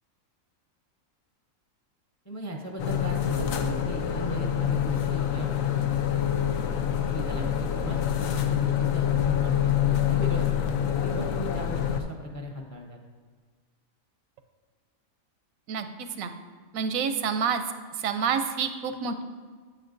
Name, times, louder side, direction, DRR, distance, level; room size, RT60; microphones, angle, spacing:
voice 1, 2.2-5.5 7.1-10.5 11.0-13.0, right 1 dB, 20° left, 1 dB, 0.5 m, -37 dB
sound 1, 2.8-12.0, left 10 dB, 80° left, 1.0 m, -26 dB
voice 2, 15.7-16.3 16.7-17.6 18.0-19.2, right 6 dB, 90° right, 8 dB, 1.0 m, -28 dB
8.6 x 8.5 x 2.6 m, 1.5 s
omnidirectional pair, 1.4 m